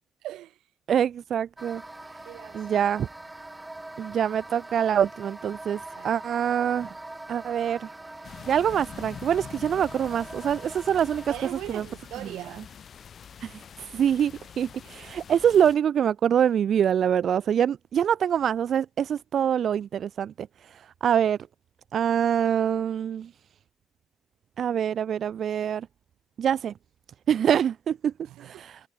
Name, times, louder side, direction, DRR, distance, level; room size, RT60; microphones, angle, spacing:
voice 1, 0.2-0.6 2.2-2.7 5.9-6.2 11.3-12.7 28.3-28.7, right 14 dB, 90° right, 2.0 m, -40 dB
voice 2, 0.9-1.8 2.5-3.1 4.0-6.9 7.3-7.9 8.5-11.3 11.7-11.8 13.4-21.4 21.9-23.3 24.6-25.9 26.4-26.7 27.3-28.1 28.4-28.8, right 9 dB, 65° right, 0.5 m, -25 dB
sound 1, 1.6-11.5, right 2 dB, 15° right, 3.4 m, -43 dB
sound 2, 8.2-15.8, left 7 dB, 55° left, 4.5 m, -45 dB
cardioid pair, 85°, 0 cm